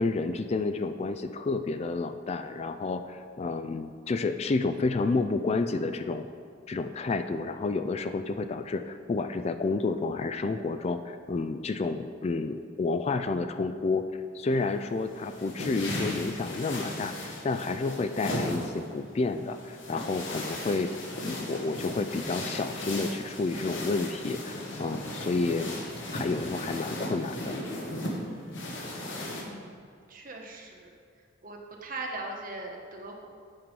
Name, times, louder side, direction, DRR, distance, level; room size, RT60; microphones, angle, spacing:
voice 1, 0.0-6.3 6.7-14.1 14.3-20.9 21.2-25.7 26.1-27.6, left 3 dB, 35° left, 9 dB, 0.3 m, -30 dB
sound 1, 14.5-29.4, left 1 dB, 75° left, 1.8 m, -36 dB
voice 2, 29.4-29.7 30.1-30.9 31.4-33.3, right 2 dB, 45° right, 1 dB, 1.3 m, -40 dB
8.7 x 7.6 x 5.3 m, 2.4 s
head